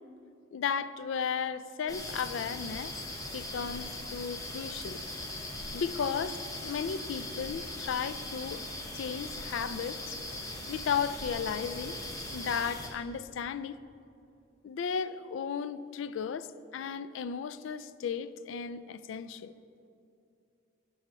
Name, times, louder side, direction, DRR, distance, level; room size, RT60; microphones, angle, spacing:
voice 1, 0.5-3.0 3.3-5.0 5.7-8.6 8.9-10.2 10.7-12.0 12.3-13.8 14.6-19.5, left 6 dB, 75° left, 0.3 m, -35 dB
sound 1, 1.9-12.9, left 1 dB, 20° left, 0.9 m, -40 dB
10.5 x 4.2 x 6.2 m
head